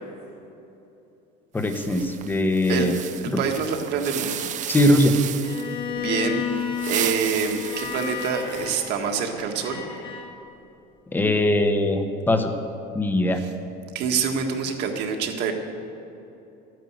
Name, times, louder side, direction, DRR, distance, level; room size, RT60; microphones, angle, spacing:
voice 1, 1.5-3.0 3.3-3.4 4.7-5.2 11.1-12.5 12.9-13.4, left 1 dB, 10° left, 6 dB, 1.0 m, -21 dB
sound 1, 1.6-5.8 6.6-8.9, right 10 dB, 40° right, 0.7 m, -34 dB
voice 2, 3.2-4.4 5.9-9.9 13.9-15.5, right 6 dB, 60° right, 3 dB, 1.7 m, -26 dB
Bowed string instrument, 5.4-10.3, left 8 dB, 25° left, 1.5 m, -32 dB
12.5 x 9.2 x 8.1 m, 2.9 s
cardioid pair, 145°, 19 cm